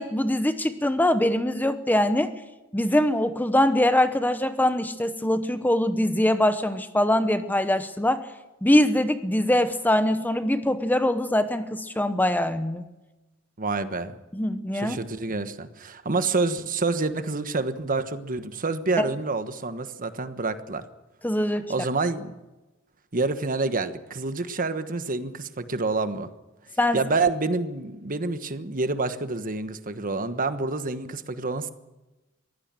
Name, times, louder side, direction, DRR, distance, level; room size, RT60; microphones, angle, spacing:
voice 1, 0.0-2.3 2.7-8.2 8.6-12.8 14.3-15.0 19.0-19.1 21.2-21.7 26.8-27.0, left 1 dB, 10° left, 10 dB, 0.9 m, -23 dB
voice 2, 13.6-14.2 14.7-20.8 21.7-22.3 23.1-26.3 26.9-31.7, right 3 dB, 40° right, 11 dB, 1.3 m, -28 dB
22.5 x 16.0 x 7.6 m, 1.1 s
head